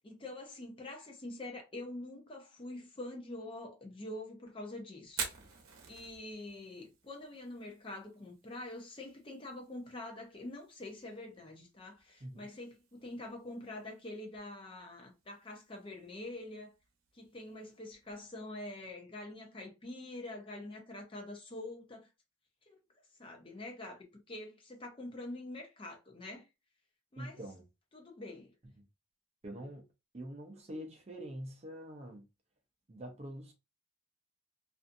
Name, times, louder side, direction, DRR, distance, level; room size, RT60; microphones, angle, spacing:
voice 1, 0.0-5.2 5.9-16.7 17.1-22.1 22.7-22.8 23.2-26.5 27.1-27.4 27.9-28.5, left 2 dB, 25° left, 0.5 m, -45 dB
Fire, 5.0-18.9, right 6 dB, 80° right, 0.8 m, -50 dB
voice 2, 27.2-27.6 28.8-28.9 29.4-29.9 30.1-32.2 32.9-33.5, right 1 dB, 30° right, 0.5 m, -45 dB
2.5 x 2.3 x 2.5 m
head